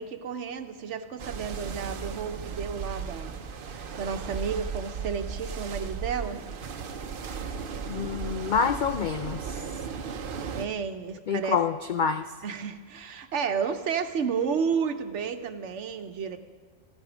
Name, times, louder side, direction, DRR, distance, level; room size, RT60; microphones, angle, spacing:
voice 1, 0.0-3.4 3.7-6.4 10.5-11.6 12.4-16.4, right 6 dB, 70° right, 8 dB, 1.1 m, -31 dB
sound 1, 1.2-10.7, right 6 dB, 50° right, 0.8 m, -36 dB
voice 2, 7.9-9.6 11.3-12.3, left 6 dB, 70° left, 8 dB, 0.4 m, -27 dB
14.5 x 13.5 x 5.0 m, 1.5 s
omnidirectional pair, 1.3 m